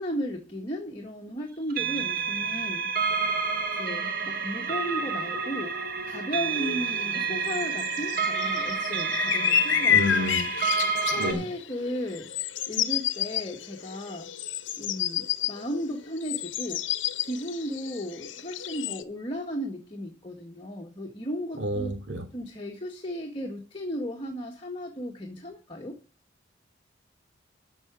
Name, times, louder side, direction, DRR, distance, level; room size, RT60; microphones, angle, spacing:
voice 1, 0.0-2.9 3.7-10.5 11.0-12.3 12.7-14.3 14.8-16.8 17.2-21.9 22.3-26.0, equal, 25° left, 0 dB, 1.7 m, -35 dB
sound 1, 1.7-11.3, right 5 dB, 50° right, 1.5 m, -29 dB
sound 2, 6.5-19.0, left 10 dB, 80° left, 0.9 m, -30 dB
voice 2, 9.9-10.4 11.2-11.5 21.6-22.2, equal, 70° right, 4 dB, 2.7 m, -29 dB
13.5 x 6.0 x 6.1 m, 0.33 s
head